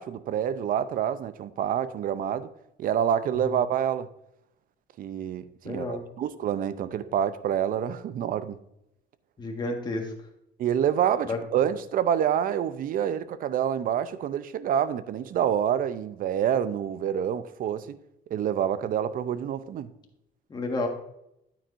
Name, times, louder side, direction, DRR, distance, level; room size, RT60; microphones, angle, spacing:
voice 1, 0.0-2.5 2.8-4.1 5.0-8.6 10.6-18.0 18.3-19.9, right 9 dB, 55° right, 0.6 m, -27 dB
voice 2, 5.6-6.0 9.4-10.1 11.2-11.4 20.5-20.9, left 2 dB, 25° left, 1.6 m, -30 dB
9.1 x 9.1 x 2.6 m
cardioid pair, 110°, 17 cm